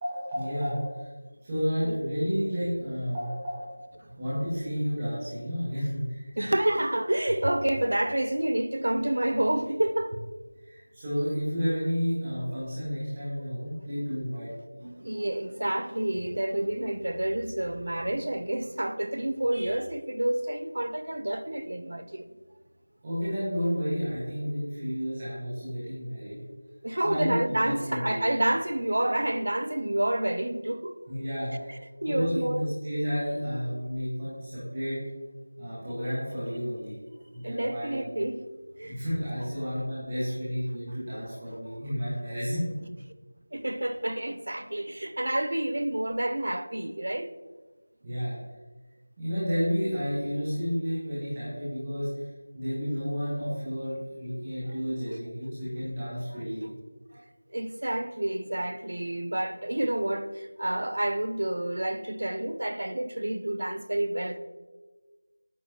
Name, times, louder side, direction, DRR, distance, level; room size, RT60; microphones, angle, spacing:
voice 1, 0.0-1.1 1.4-3.6 4.2-6.3 10.6-14.5 23.0-26.4 27.0-28.2 31.1-31.8 32.1-35.1 35.6-37.0 37.3-38.0 38.8-42.6 48.0-48.4 49.2-56.7, equal, 20° right, 1.5 m, -31 dB
voice 2, 6.4-10.3 14.8-22.3 26.7-31.0 31.5-32.7 37.4-38.5 38.8-39.0 43.5-47.3 57.1-57.2 57.5-64.4, right 1 dB, 65° right, 0.4 m, -29 dB
9.0 x 4.2 x 2.9 m
figure-of-eight pair, 175°, 0 cm